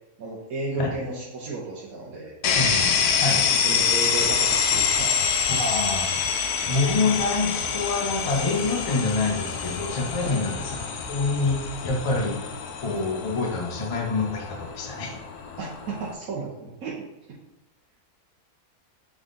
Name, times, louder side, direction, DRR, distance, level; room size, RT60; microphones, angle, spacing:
voice 1, 0.2-2.3 3.3-5.1 10.2-10.4 15.6-17.0, right 3 dB, 75° right, -5 dB, 1.3 m, -33 dB
sound 1, 2.4-16.1, left 6 dB, 90° left, 1.1 m, -26 dB
voice 2, 2.4-3.4 5.5-10.8 11.1-11.6 11.8-12.4 12.8-15.2, left 3 dB, 45° left, 1 dB, 0.4 m, -26 dB
sound 2, 4.2-11.8, right 1 dB, 40° right, 1.7 m, -43 dB
3.7 x 3.7 x 3.7 m, 0.98 s
omnidirectional pair, 1.6 m